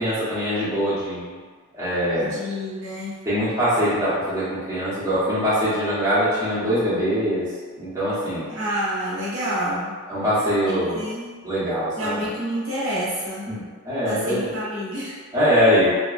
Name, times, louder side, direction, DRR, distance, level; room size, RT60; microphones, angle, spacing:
voice 1, 0.0-1.3 1.7-2.4 3.3-7.5 7.8-8.5 10.1-11.0 11.4-12.2 13.5-14.5 15.3-15.9, equal, 15° right, -12 dB, 1.0 m, -22 dB
voice 2, 2.2-3.2 8.5-9.9 10.7-11.4 12.0-13.5 14.0-15.1, equal, 60° right, -9 dB, 0.7 m, -28 dB
2.8 x 2.3 x 2.4 m, 1.5 s
head